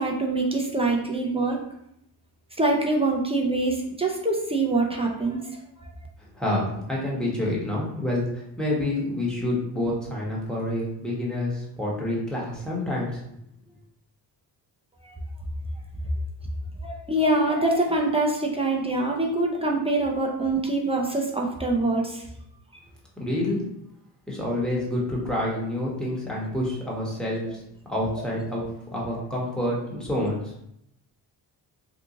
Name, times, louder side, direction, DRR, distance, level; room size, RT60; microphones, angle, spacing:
voice 1, 0.0-1.6 2.6-5.9 15.0-15.1 16.8-22.2, right 2 dB, 15° right, -1 dB, 0.6 m, -24 dB
voice 2, 6.2-13.2 23.2-23.6 24.3-27.6 27.9-30.5, left 1 dB, ahead, -5 dB, 1.2 m, -28 dB
2.8 x 2.5 x 3.7 m, 0.77 s
cardioid pair, 80°, 43 cm